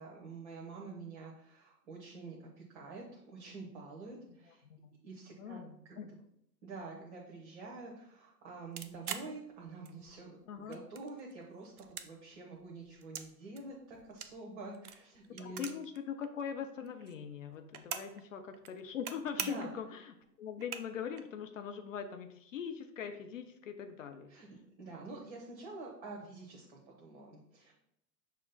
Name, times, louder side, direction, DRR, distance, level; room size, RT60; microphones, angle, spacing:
voice 1, 0.0-4.6 5.0-5.6 5.9-6.0 6.6-15.6 19.4-19.7 24.3-27.7, right 3 dB, 40° right, -2 dB, 0.9 m, -47 dB
voice 2, 4.4-4.9 5.4-6.1 10.5-10.8 15.4-24.3, left 7 dB, 50° left, 6 dB, 0.5 m, -42 dB
sound 1, 8.8-10.2 10.5-11.3 11.6-13.3 13.6-16.0 16.2-16.3 16.5-18.2 18.5-19.1 19.4-19.8 20.2-20.3 20.6-21.2, right 8 dB, 60° right, 0.6 m, -43 dB
6.2 x 2.1 x 3.9 m, 0.76 s
figure-of-eight pair, 105°, 50 cm